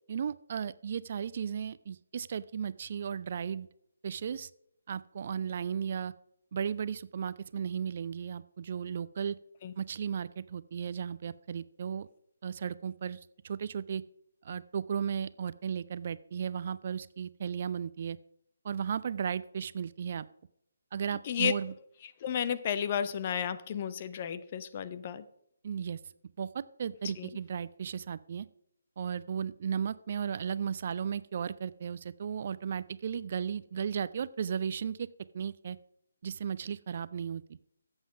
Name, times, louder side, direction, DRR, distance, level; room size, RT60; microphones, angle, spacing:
voice 1, 0.1-3.7 4.0-4.5 4.9-6.1 6.5-9.4 9.8-12.1 12.4-13.2 13.4-14.0 14.4-18.2 18.6-20.3 20.9-21.7 25.6-26.0 26.4-28.5 29.0-35.1 35.3-35.8 36.2-37.4, right 7 dB, 40° right, 17 dB, 0.4 m, -35 dB
voice 2, 21.2-21.5 22.0-25.3 27.0-27.3, left 8 dB, 30° left, 14 dB, 0.7 m, -33 dB
14.0 x 8.1 x 5.1 m, 0.76 s
figure-of-eight pair, 145°, 0 cm